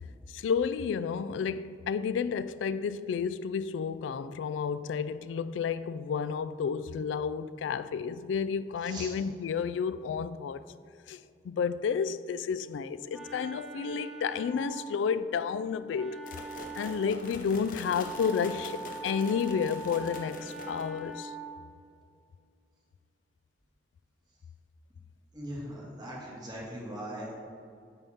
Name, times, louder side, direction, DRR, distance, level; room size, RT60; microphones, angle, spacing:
voice 1, 0.3-10.6 11.1-11.2 11.4-16.2 16.8-21.3, left 6 dB, 90° left, 0.3 m, -31 dB
Wind instrument woodwind instrument, 12.6-21.7, right 2 dB, 5° right, 0.5 m, -43 dB
sound 1, 16.3-21.1, left 2 dB, 50° left, 0.7 m, -44 dB
voice 2, 25.3-27.4, right 1 dB, 20° right, 1.8 m, -40 dB
9.1 x 3.6 x 5.7 m
head